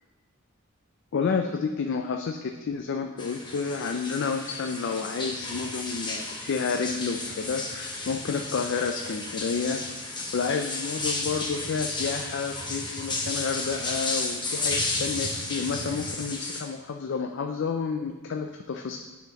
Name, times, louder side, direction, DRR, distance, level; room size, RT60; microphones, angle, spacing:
voice 1, 1.1-19.0, left 5 dB, 60° left, 4 dB, 0.4 m, -30 dB
sound 1, 3.2-16.6, left 2 dB, 20° left, 1.0 m, -33 dB
sound 2, 5.2-16.3, right 2 dB, 25° right, 0.4 m, -46 dB
9.2 x 5.7 x 2.9 m, 1.2 s
head